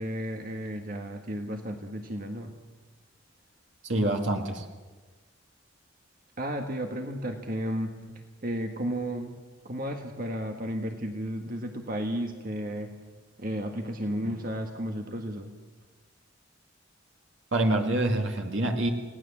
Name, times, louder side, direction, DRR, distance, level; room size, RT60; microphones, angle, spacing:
voice 1, 0.0-2.5 6.4-8.0 8.4-9.3 9.6-12.9 13.4-15.5, equal, 45° right, 4 dB, 1.6 m, -33 dB
voice 2, 3.8-4.6 17.5-18.9, right 1 dB, 70° right, 2 dB, 2.3 m, -26 dB
29.5 x 18.5 x 7.4 m, 1.3 s
head